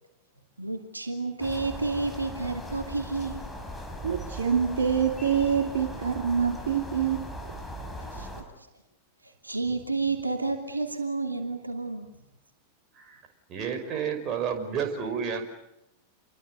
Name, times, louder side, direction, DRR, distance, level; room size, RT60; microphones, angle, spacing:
voice 1, 0.6-3.5 8.1-8.3 9.4-12.1, right 3 dB, 80° right, 5 dB, 2.9 m, -30 dB
sound 1, 1.4-8.4, equal, 5° left, 5.5 m, -39 dB
voice 2, 4.0-7.3 8.2-8.3, right 7 dB, 65° right, 5 dB, 2.5 m, -26 dB
voice 3, 13.5-15.4, right 7 dB, 30° right, 6 dB, 5.5 m, -30 dB
28.5 x 23.0 x 8.0 m, 0.83 s
figure-of-eight pair, 90°, 0 cm